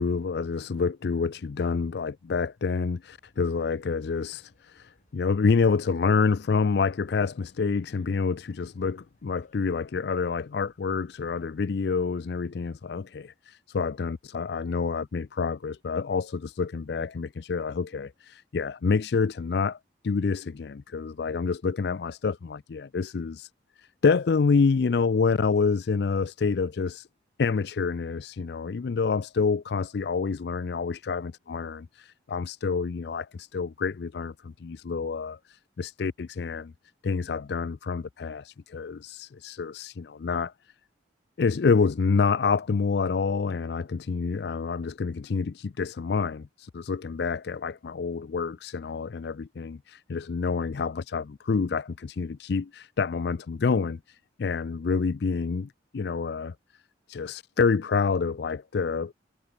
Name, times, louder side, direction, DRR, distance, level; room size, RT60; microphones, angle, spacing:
voice 1, 0.0-19.8 20.0-23.5 23.8-27.1 27.4-36.7 37.0-40.7 41.4-56.5 57.1-59.1, left 5 dB, 60° left, 0.4 m, -27 dB
sound 1, 3.0-11.5, left 1 dB, 40° left, 7.6 m, -67 dB
head